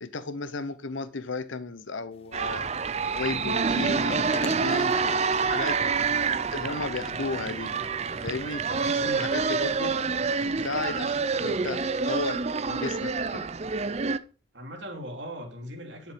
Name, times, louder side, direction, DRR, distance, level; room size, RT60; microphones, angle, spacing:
voice 1, 0.0-2.7 3.1-5.9 6.5-7.7 8.2-10.0 10.6-13.5, left 3 dB, 75° left, 0.8 m, -34 dB
sound 1, 2.1-9.1, left 2 dB, 30° left, 1.4 m, -49 dB
sound 2, 2.3-14.2, right 5 dB, 35° right, 0.5 m, -27 dB
voice 2, 8.9-9.3 14.5-16.1, equal, 65° right, 3.0 m, -38 dB
10.5 x 7.3 x 5.1 m
head